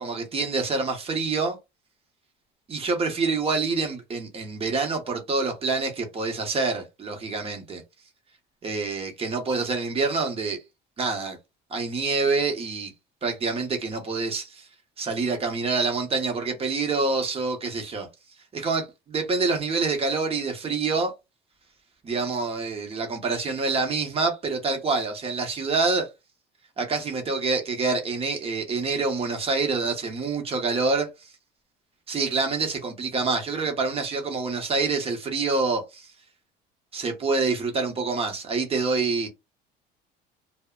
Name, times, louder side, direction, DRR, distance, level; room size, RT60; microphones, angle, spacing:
voice 1, 0.0-1.6 2.7-7.8 8.6-10.6 11.0-11.4 11.7-12.9 13.2-14.7 15.0-18.1 18.5-21.1 22.0-26.1 26.8-31.1 32.1-36.1 36.9-39.3, right 4 dB, 30° right, 0.9 m, -26 dB
2.1 x 2.0 x 3.6 m
cardioid pair, 105°, 19 cm